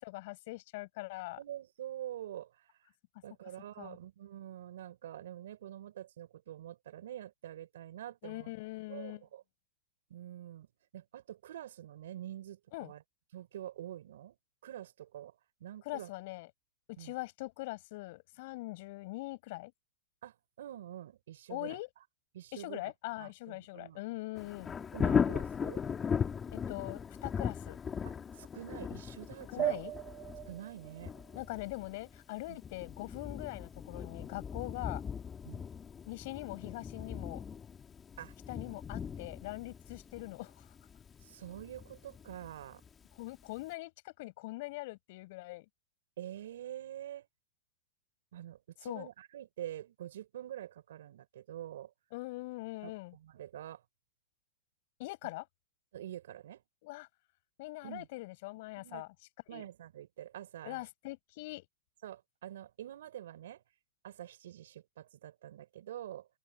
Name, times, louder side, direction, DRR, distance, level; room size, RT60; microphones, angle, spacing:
voice 1, 0.0-1.4 3.8-4.0 8.2-9.2 12.7-12.9 15.9-16.5 16.9-19.7 21.5-21.9 22.5-24.7 26.5-27.8 29.5-29.9 31.4-35.0 36.0-37.4 38.5-40.7 43.2-45.7 48.8-49.1 52.1-53.2 55.0-55.5 56.8-57.1 57.6-59.1 59.5-59.7 60.6-61.7, left 21 dB, 60° left, 7.2 m, -42 dB
voice 2, 1.4-2.7 3.2-8.5 8.9-9.4 10.1-10.7 10.9-13.0 13.3-14.4 14.6-15.3 15.6-16.1 17.0-17.2 20.2-21.8 22.3-22.8 23.2-24.0 24.9-25.8 28.0-29.8 30.5-31.1 32.5-32.6 35.4-35.7 38.2-38.3 41.2-42.8 46.2-47.3 48.3-51.9 52.8-53.8 55.9-56.6 57.8-58.1 58.8-59.1 59.5-60.8 62.0-63.6 64.0-66.3, right 12 dB, 75° right, 6.0 m, -46 dB
Thunder, 24.3-43.1 43.6-43.7, left 7 dB, 20° left, 2.6 m, -38 dB
sound 1, 29.6-32.5, right 13 dB, 35° right, 2.0 m, -39 dB
open air
hypercardioid pair, 115°, 0 cm